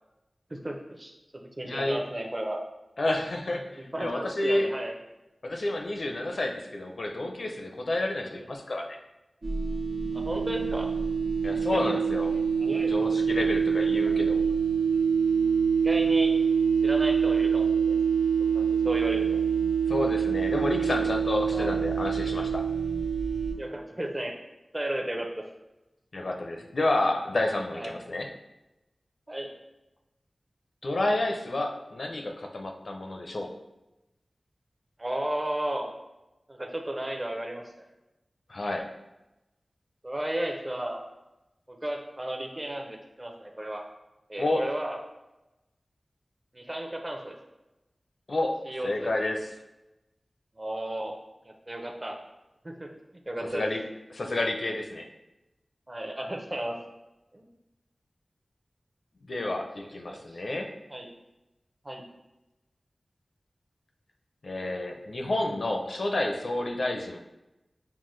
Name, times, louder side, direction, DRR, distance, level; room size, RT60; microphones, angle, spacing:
voice 1, 0.5-2.6 3.8-4.9 8.3-8.5 10.1-10.9 11.7-11.9 12.3-13.0 13.8-13.9 15.8-16.3 16.8-18.0 18.5-19.4 21.5-21.8 23.6-24.3 24.7-25.4 27.7-28.0 29.3-29.5 35.0-35.9 36.5-37.6 40.0-41.0 41.7-43.8 44.3-45.0 46.5-47.4 48.7-49.2 50.6-51.2 51.4-52.2 52.6-52.9 53.3-53.6 55.9-56.7 57.3-57.4 60.1-60.4 60.9-61.1 61.8-62.0, right 1 dB, 30° right, 2 dB, 0.6 m, -34 dB
voice 2, 1.6-2.0 3.0-4.7 5.4-8.9 11.4-12.3 12.9-14.4 19.9-22.6 26.1-28.3 30.8-33.5 38.5-38.9 44.4-44.6 48.3-48.6 48.8-49.5 53.5-53.8 54.1-55.1 59.2-60.7 64.4-67.2, left 2 dB, 70° left, 3 dB, 0.5 m, -30 dB
sound 1, 9.4-23.5, right 6 dB, 85° right, 0.7 m, -25 dB
5.6 x 2.1 x 3.1 m, 0.98 s
wide cardioid pair, 55°, 0 cm